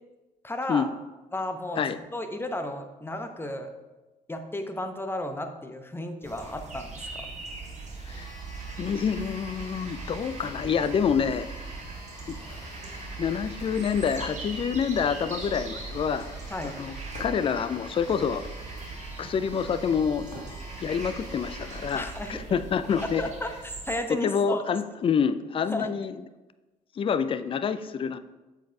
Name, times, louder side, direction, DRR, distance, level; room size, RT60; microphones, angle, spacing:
voice 1, 0.4-0.9 1.3-1.8 2.1-3.7 4.3-7.3 16.5-16.7 21.9-22.4 23.2-24.6 25.7-25.9, left 1 dB, 10° left, 7 dB, 0.8 m, -33 dB
sound 1, 6.2-24.0, right 3 dB, 35° right, 1.6 m, -40 dB
sound 2, 8.1-21.9, right 1 dB, 90° right, 1.5 m, -47 dB
voice 2, 8.8-11.5 12.3-12.4 13.2-16.4 16.6-18.5 18.9-20.3 20.8-23.2 24.2-26.1 27.0-28.2, left 6 dB, 25° left, 12 dB, 0.4 m, -27 dB
sound 3, 10.3-21.9, left 1 dB, 80° left, 1.6 m, -51 dB
8.8 x 7.1 x 2.3 m, 1.1 s
figure-of-eight pair, 50°, 21 cm